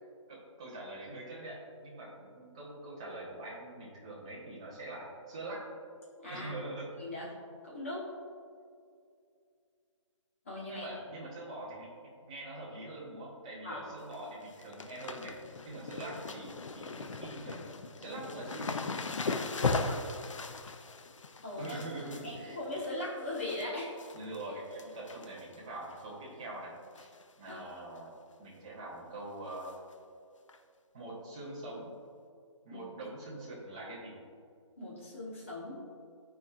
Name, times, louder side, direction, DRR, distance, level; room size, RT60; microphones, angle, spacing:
voice 1, 0.3-5.7 6.3-6.9 10.7-15.4 15.6-18.7 21.6-22.6 24.1-27.1 27.4-28.1 28.4-29.8 30.9-31.9 32.6-34.2, right 2 dB, 10° right, -6 dB, 0.7 m, -44 dB
voice 2, 6.2-6.6 7.0-7.3 7.6-8.1 10.4-11.0 13.6-13.8 19.7-20.0 21.4-21.8 22.2-24.0 27.5-27.6 32.7-32.8 34.8-35.8, left 1 dB, 25° left, -6 dB, 1.3 m, -39 dB
sound 1, 13.8-14.2 14.4-23.6 24.0-24.4 24.7-25.6 25.9-26.0 26.9-27.2 27.5-27.6 28.0-28.1 29.6-29.7 30.5-30.6, left 3 dB, 75° left, 0.6 m, -38 dB
12.5 x 4.7 x 2.4 m, 2.3 s
hypercardioid pair, 180°, 16 cm